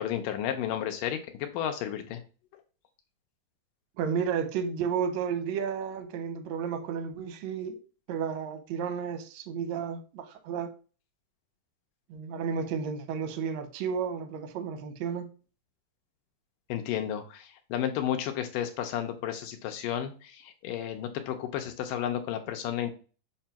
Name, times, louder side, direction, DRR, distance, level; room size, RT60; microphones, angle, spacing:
voice 1, 0.0-2.2 16.7-22.9, left 10 dB, 75° left, 2.2 m, -32 dB
voice 2, 4.0-7.8 8.1-10.7 12.1-15.3, right 7 dB, 75° right, 1.6 m, -32 dB
7.5 x 2.6 x 5.8 m
omnidirectional pair, 4.3 m